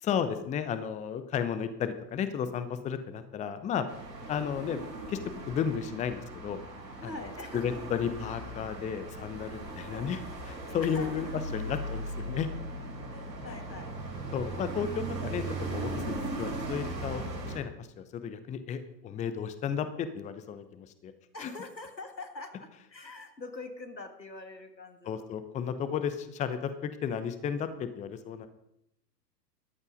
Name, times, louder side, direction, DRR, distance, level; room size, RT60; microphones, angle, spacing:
voice 1, 0.0-3.9 4.3-4.8 5.1-6.6 7.0-7.1 7.5-10.2 10.5-11.2 11.5-12.5 14.3-15.4 15.7-21.1 21.4-21.5 25.1-28.5, left 7 dB, 15° left, 11 dB, 0.9 m, -33 dB
sound 1, 3.9-17.6, right 2 dB, 80° right, 4.2 m, -38 dB
voice 2, 7.0-7.7 9.9-10.1 10.8-11.3 13.1-13.9 21.3-25.3, left 3 dB, 85° left, 7 dB, 1.8 m, -44 dB
14.0 x 11.0 x 5.2 m, 0.79 s
figure-of-eight pair, 100°, 50 cm